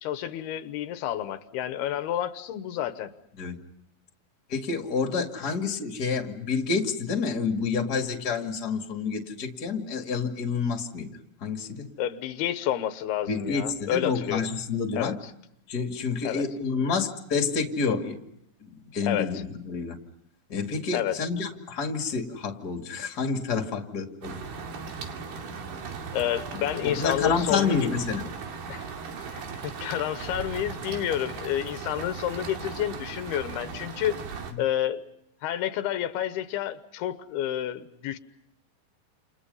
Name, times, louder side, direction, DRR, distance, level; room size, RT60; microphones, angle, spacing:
voice 1, 0.0-3.1 12.0-14.5 14.9-15.1 16.2-16.4 19.0-19.4 20.9-21.2 26.1-27.9 28.7-28.9 29.3-34.2 34.6-35.0 35.4-38.2, left 11 dB, 90° left, 11 dB, 3.1 m, -29 dB
voice 2, 4.5-11.1 11.4-11.9 13.3-15.1 15.7-18.2 18.6-20.0 20.5-24.4 26.8-28.2, left 5 dB, 30° left, 4 dB, 2.4 m, -29 dB
sound 1, 24.2-34.5, right 5 dB, 85° right, 4.4 m, -37 dB
29.0 x 29.0 x 5.6 m, 0.78 s
omnidirectional pair, 4.4 m